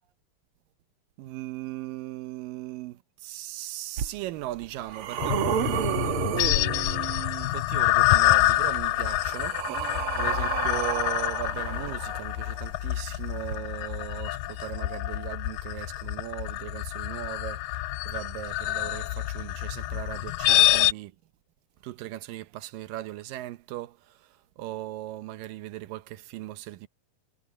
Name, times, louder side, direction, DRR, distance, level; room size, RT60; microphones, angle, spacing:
voice 1, 1.2-21.2 21.8-26.9, right 15 dB, 80° right, 2.5 m, -38 dB
sound 1, 4.0-4.1 4.6-7.4 8.6-12.5 13.5-13.6, right 10 dB, 60° right, 1.5 m, -31 dB
sound 2, 5.2-20.9, left 16 dB, 85° left, 2.3 m, -27 dB
omnidirectional pair, 3.9 m